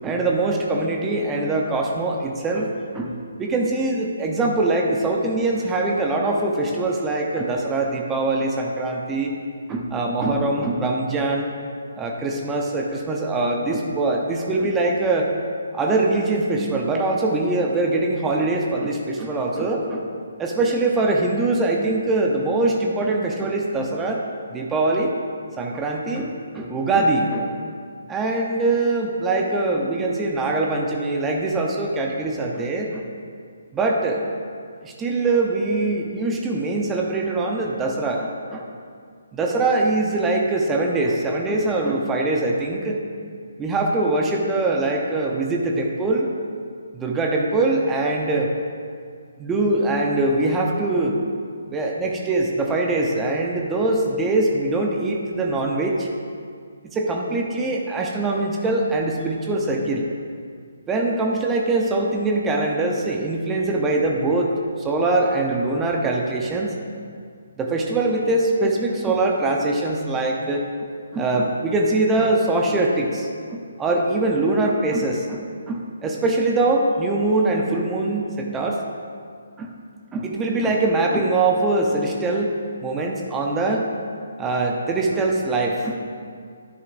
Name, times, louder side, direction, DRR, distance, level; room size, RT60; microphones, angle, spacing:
voice 1, 0.0-3.1 3.4-9.3 9.7-11.5 12.0-15.3 15.7-20.0 20.4-24.2 24.5-25.2 25.6-27.5 28.1-33.0 33.7-34.2 34.8-38.7 39.3-43.0 43.6-46.3 46.9-48.5 49.4-51.2 51.7-56.1 56.9-60.0 60.9-64.5 64.8-66.8 67.6-70.6 71.1-75.4 75.7-78.8 79.6-79.7 80.1-83.9 84.4-86.0, right 2 dB, 15° right, 0 dB, 0.8 m, -22 dB
11.0 x 9.7 x 2.7 m, 2.2 s
figure-of-eight pair, 140°, 0 cm